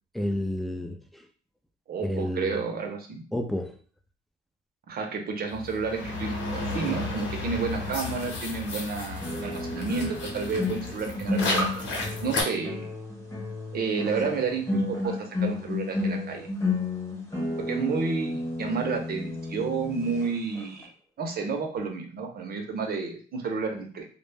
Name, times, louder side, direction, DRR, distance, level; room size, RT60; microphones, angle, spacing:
voice 1, 0.1-1.2 2.0-2.6 3.3-3.7, left 1 dB, ahead, 4 dB, 0.3 m, -30 dB
voice 2, 1.9-3.2 4.9-11.7 12.2-12.9 13.7-16.5 17.6-20.9 21.2-24.1, right 4 dB, 50° right, 3 dB, 0.6 m, -31 dB
sound 1, 5.5-12.4, left 2 dB, 70° left, 0.9 m, -33 dB
sound 2, 7.8-7.9 9.2-20.3 20.5-20.8, left 2 dB, 15° left, 1.0 m, -32 dB
2.1 x 2.0 x 3.2 m, 0.43 s
cardioid pair, 90°, 20 cm